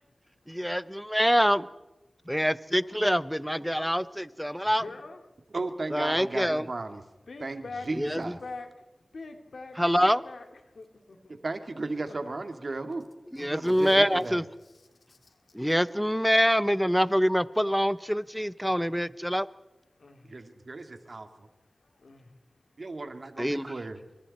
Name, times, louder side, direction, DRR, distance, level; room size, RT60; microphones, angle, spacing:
voice 1, 0.5-1.7 2.3-4.8 5.9-6.6 7.9-8.2 9.8-10.2 13.3-14.4 15.5-19.5 23.4-23.6, equal, ahead, 16 dB, 0.8 m, -25 dB
voice 2, 4.6-5.2 7.3-8.7 9.1-11.4 12.1-12.2 13.4-13.5 15.1-15.4 20.0-20.4 21.8-22.3, left 3 dB, 90° left, 5 dB, 2.8 m, -44 dB
voice 3, 5.5-7.0 7.4-8.4 11.3-13.0 13.5-14.5 20.2-21.5 22.8-24.0, right 3 dB, 65° right, 7 dB, 2.5 m, -35 dB
28.0 x 25.5 x 4.3 m, 1.0 s
wide cardioid pair, 50°, 0 cm